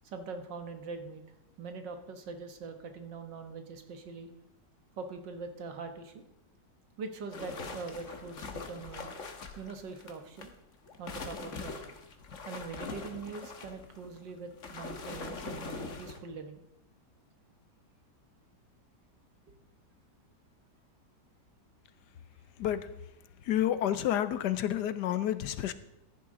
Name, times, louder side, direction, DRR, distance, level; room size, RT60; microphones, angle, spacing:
voice 1, 0.0-1.2 1.6-4.3 5.0-6.2 7.0-9.1 9.6-10.5 11.0-11.8 12.5-16.6 19.5-19.6, right 4 dB, 85° right, 6 dB, 2.0 m, -42 dB
sound 1, 7.3-10.5 10.9-16.2, left 4 dB, 50° left, 1.5 m, -42 dB
voice 2, 23.4-25.7, left 11 dB, 75° left, 14 dB, 1.3 m, -29 dB
14.5 x 10.5 x 3.8 m, 0.94 s
omnidirectional pair, 1.9 m